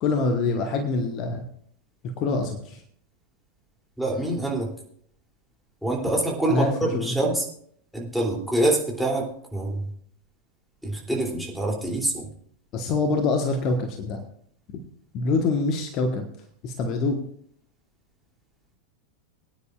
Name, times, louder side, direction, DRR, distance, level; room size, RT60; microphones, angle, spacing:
voice 1, 0.0-1.4 2.2-2.8 6.5-7.2 12.7-14.2 15.1-16.3 16.6-17.2, left 3 dB, 35° left, 5 dB, 1.3 m, -25 dB
voice 2, 4.0-4.7 5.8-7.5 7.9-9.9 10.8-12.3, right 2 dB, ahead, -3 dB, 3.0 m, -25 dB
23.0 x 9.9 x 2.5 m, 0.63 s
figure-of-eight pair, 90°, 0 cm